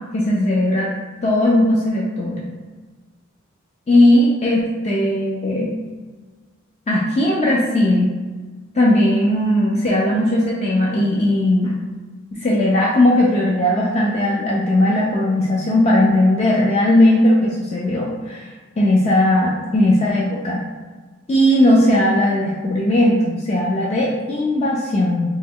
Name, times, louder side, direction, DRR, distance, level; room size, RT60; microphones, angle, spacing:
voice 1, 0.1-0.9 1.2-2.5 3.9-5.7 6.9-8.1 8.7-11.8 12.4-20.6 21.3-25.2, left 1 dB, 30° left, -4 dB, 0.3 m, -17 dB
3.3 x 2.1 x 3.5 m, 1.4 s
head